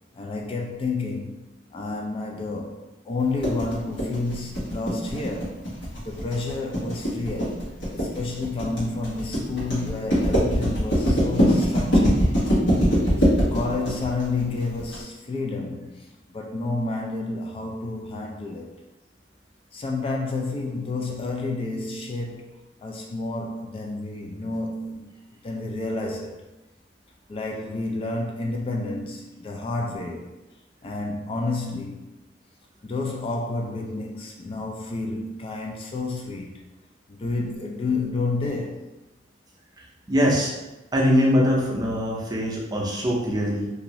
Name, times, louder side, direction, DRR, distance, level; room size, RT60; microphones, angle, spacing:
voice 1, 0.2-5.6 6.0-12.2 13.5-18.8 19.7-22.5 22.8-25.1 25.4-26.4 27.3-30.3 30.8-32.1 32.8-36.6 37.1-38.9, left 3 dB, 30° left, 0 dB, 0.3 m, -30 dB
sound 1, 3.4-15.0, equal, 90° left, 1.2 m, -22 dB
voice 2, 40.1-40.6 40.9-43.7, equal, 20° right, -3 dB, 0.5 m, -22 dB
2.6 x 2.5 x 3.0 m, 1.0 s
head